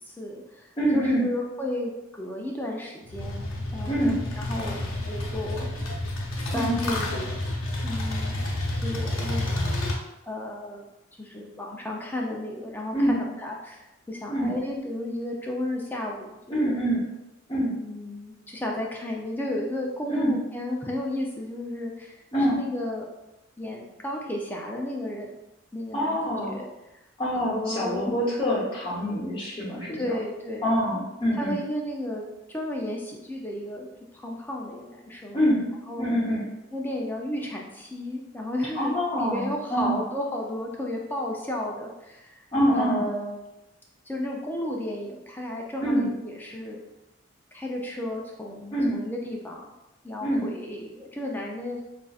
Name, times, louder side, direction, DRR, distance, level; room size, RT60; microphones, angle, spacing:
voice 1, 0.1-5.7 6.5-7.4 7.8-8.4 8.8-9.8 10.2-10.9 11.2-16.8 17.7-22.2 22.5-23.1 23.6-25.3 25.7-26.7 27.5-28.1 29.9-30.7 31.3-32.2 32.5-35.4 35.9-36.0 36.7-38.9 39.2-43.4 44.1-46.8 47.5-49.7 50.0-51.8, left 1 dB, 10° left, -1 dB, 0.4 m, -33 dB
voice 2, 0.8-1.2 3.9-4.2 6.5-6.7 12.9-13.2 14.3-14.5 16.5-17.0 17.5-17.7 20.1-20.4 22.3-22.6 25.9-26.5 27.2-30.1 30.6-31.6 35.3-35.7 36.0-36.4 38.7-40.0 42.5-43.1 45.8-46.1 48.7-49.0 50.2-50.5, equal, 25° left, -6 dB, 0.9 m, -25 dB
sound 1, 3.0-9.9, left 1 dB, 80° left, 0.7 m, -30 dB
5.4 x 2.5 x 2.3 m, 0.97 s
head